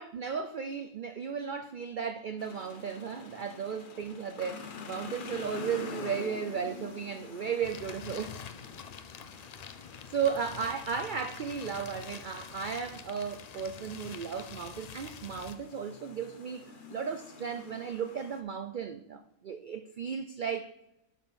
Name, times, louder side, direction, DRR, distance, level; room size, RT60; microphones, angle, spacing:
voice 1, 0.0-8.4 10.1-20.7, right 6 dB, 80° right, 9 dB, 0.4 m, -35 dB
sound 1, 2.4-18.4, left 5 dB, 45° left, 0.8 m, -47 dB
sound 2, 7.6-15.5, left 7 dB, 75° left, 0.3 m, -46 dB
11.0 x 5.6 x 4.1 m, 0.86 s
omnidirectional pair, 1.4 m